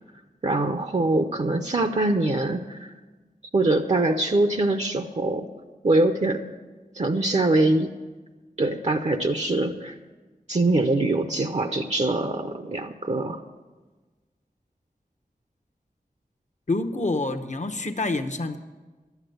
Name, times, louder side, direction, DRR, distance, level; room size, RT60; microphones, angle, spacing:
voice 1, 0.4-2.9 3.5-5.5 5.8-6.5 6.9-7.9 8.6-9.9 10.5-13.4, right 2 dB, 45° right, 7 dB, 0.6 m, -23 dB
voice 2, 16.7-18.6, left 2 dB, 50° left, 7 dB, 0.8 m, -27 dB
11.5 x 8.2 x 7.9 m, 1.3 s
wide cardioid pair, 60°, 16 cm